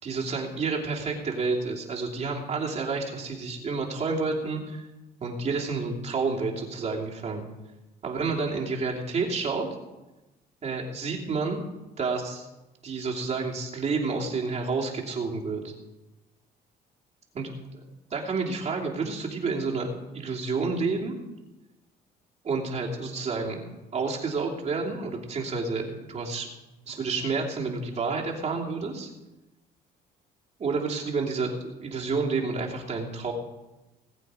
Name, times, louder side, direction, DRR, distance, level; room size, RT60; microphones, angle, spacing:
voice 1, 0.0-4.9 5.2-7.5 8.0-9.7 10.6-11.6 12.0-12.5 12.8-15.7 17.3-17.5 18.1-19.9 20.1-21.1 22.4-23.6 23.9-26.5 26.9-29.1 30.6-33.3, right 4 dB, 40° right, -1 dB, 2.9 m, -29 dB
20.0 x 8.3 x 5.0 m, 1.1 s
cardioid pair, 110°, 17 cm